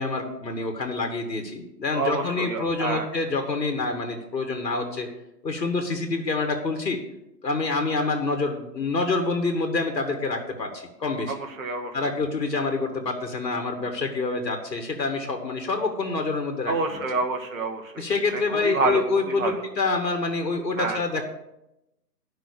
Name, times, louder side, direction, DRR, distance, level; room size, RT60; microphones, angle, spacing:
voice 1, 0.0-5.1 5.4-7.0 7.4-11.3 11.9-16.7 18.0-21.2, left 3 dB, 75° left, 4 dB, 2.1 m, -27 dB
voice 2, 1.9-3.1 11.3-12.0 16.7-18.0 18.3-19.7 20.8-21.0, right 3 dB, 50° right, 2 dB, 1.7 m, -28 dB
10.5 x 6.1 x 6.7 m, 0.90 s
hypercardioid pair, 160°, 50 cm